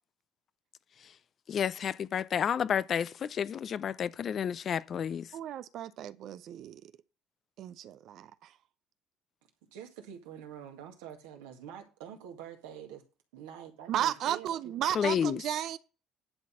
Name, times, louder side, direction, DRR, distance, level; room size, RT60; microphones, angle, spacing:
voice 1, 1.5-5.3 15.0-15.4, left 8 dB, 50° left, 0.5 m, -30 dB
voice 2, 5.3-6.9 7.6-8.5 13.9-15.8, right 11 dB, 65° right, 0.6 m, -34 dB
voice 3, 9.6-13.0 13.3-15.2, right 9 dB, 85° right, 1.9 m, -46 dB
11.0 x 4.0 x 7.6 m
hypercardioid pair, 65°, 0 cm